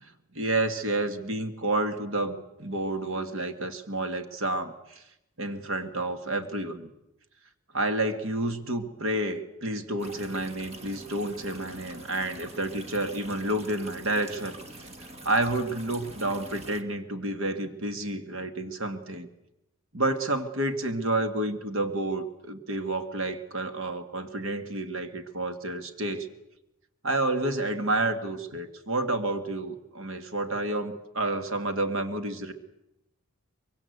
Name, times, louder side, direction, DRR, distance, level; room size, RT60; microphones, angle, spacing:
voice 1, 0.0-5.0 5.4-6.9 7.7-14.9 15.2-19.3 19.9-26.3 27.0-32.5, right 2 dB, 65° right, 8 dB, 2.0 m, -30 dB
sound 1, 10.0-16.8, right 1 dB, 30° right, 1.6 m, -45 dB
24.0 x 23.5 x 8.1 m, 0.86 s
head